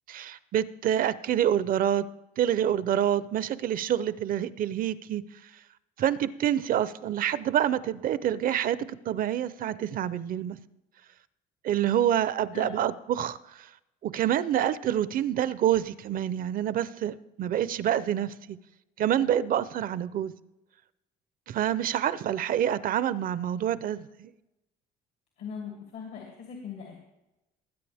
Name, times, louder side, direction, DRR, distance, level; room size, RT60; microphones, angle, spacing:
voice 1, 0.1-2.0 2.4-5.2 6.0-10.6 11.6-13.7 14.0-18.6 19.0-20.3 21.5-24.3, right 10 dB, 55° right, 0.6 m, -27 dB
voice 2, 25.4-27.0, left 6 dB, 85° left, 2.6 m, -40 dB
20.0 x 9.1 x 3.5 m
cardioid pair, 110°, 17 cm